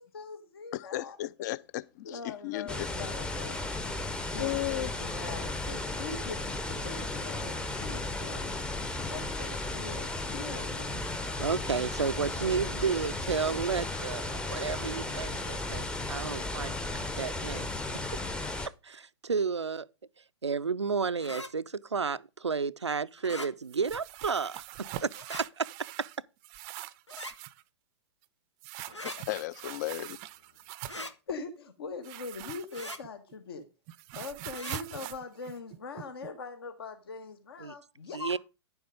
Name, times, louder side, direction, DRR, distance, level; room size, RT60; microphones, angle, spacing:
voice 1, 0.0-1.2 2.0-3.6 4.3-6.4 6.7-8.5 9.1-10.9 31.3-33.7 34.1-38.3, left 4 dB, 60° left, 1.3 m, -42 dB
voice 2, 0.7-2.9 4.4-4.9 28.9-30.2, left 16 dB, 40° left, 0.5 m, -35 dB
sound 1, 2.7-18.7, left 2 dB, 5° left, 0.7 m, -35 dB
voice 3, 11.4-17.7 18.8-19.9 20.4-25.7 37.6-37.7 38.1-38.4, right 5 dB, 80° right, 0.5 m, -32 dB
sound 2, 21.2-21.5 23.2-23.5 25.1-25.4 27.1-27.4 28.9-29.2 30.9-31.1 32.7-33.0 34.5-34.8, left 1 dB, 85° left, 1.1 m, -41 dB
sound 3, 23.7-26.2 26.4-27.6 28.6-31.1 32.0-33.3 33.6-36.3, right 15 dB, 30° right, 0.5 m, -43 dB
10.5 x 7.1 x 5.1 m
figure-of-eight pair, 105°, 14 cm